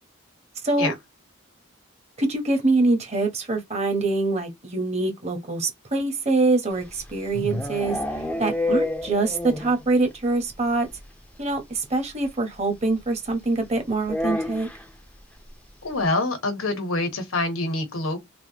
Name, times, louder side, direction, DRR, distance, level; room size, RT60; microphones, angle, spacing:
voice 1, 2.2-8.0 8.4-10.9 11.4-14.7, right 2 dB, 30° right, 0.8 m, -24 dB
sound 1, 6.8-9.8 10.1-10.2 10.5-10.6 10.9-11.0 12.2-12.3 14.0-14.9, left 1 dB, 5° left, 0.4 m, -28 dB
voice 2, 15.8-18.2, left 2 dB, 80° left, 1.0 m, -26 dB
3.4 x 2.2 x 2.7 m
head